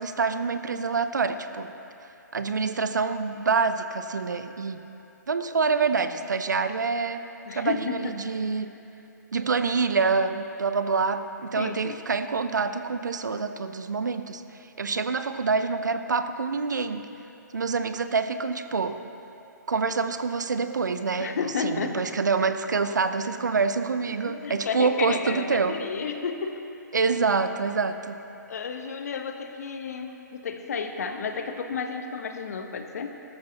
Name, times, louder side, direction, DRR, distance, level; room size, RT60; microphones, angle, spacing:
voice 1, 0.0-1.7 2.3-4.8 5.3-7.3 7.5-8.7 9.3-14.4 14.8-17.1 17.5-19.0 19.7-25.8 26.9-28.2, right 4 dB, 70° right, 10 dB, 0.7 m, -26 dB
voice 2, 7.5-8.2 11.6-12.0 21.2-22.1 24.2-26.6 28.5-33.1, left 5 dB, 55° left, 6 dB, 1.1 m, -32 dB
19.5 x 13.5 x 2.9 m, 2.9 s
figure-of-eight pair, 130°, 10 cm